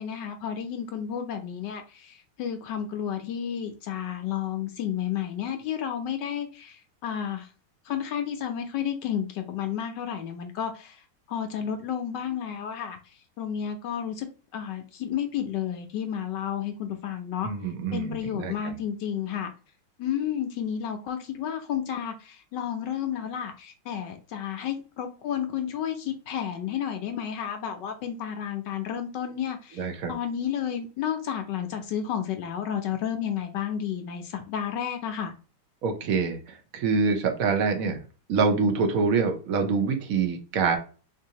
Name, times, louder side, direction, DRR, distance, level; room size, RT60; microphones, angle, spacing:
voice 1, 0.0-7.5 7.9-11.0 11.3-13.0 13.4-14.3 14.5-17.5 17.9-19.5 20.0-35.3, left 9 dB, 75° left, 1.0 m, -31 dB
voice 2, 17.4-18.7 29.8-30.1 35.8-38.0 38.3-40.8, right 4 dB, 60° right, 0.9 m, -26 dB
3.9 x 2.6 x 2.8 m
omnidirectional pair, 2.4 m